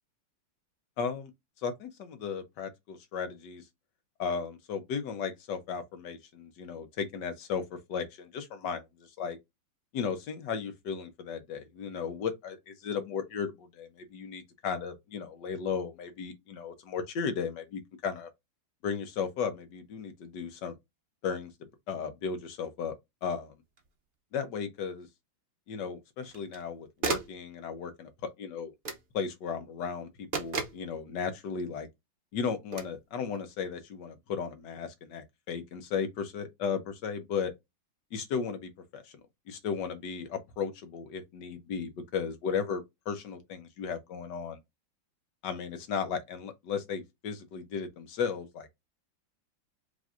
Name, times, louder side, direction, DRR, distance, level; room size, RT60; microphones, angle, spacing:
voice 1, 1.0-1.3 1.6-3.6 4.2-9.4 9.9-18.3 18.8-20.8 21.2-21.5 21.9-22.9 23.2-23.5 24.3-25.1 25.7-28.7 29.1-31.9 32.3-37.5 38.1-39.1 39.5-44.6 45.4-48.7, left 6 dB, 65° left, 1.4 m, -35 dB
sound 1, 23.8-23.9 26.2-26.6 27.0-27.4 28.8-29.1 30.3-30.9 32.7-33.0, right 5 dB, 90° right, 0.4 m, -34 dB
5.0 x 3.1 x 2.5 m
omnidirectional pair, 2.1 m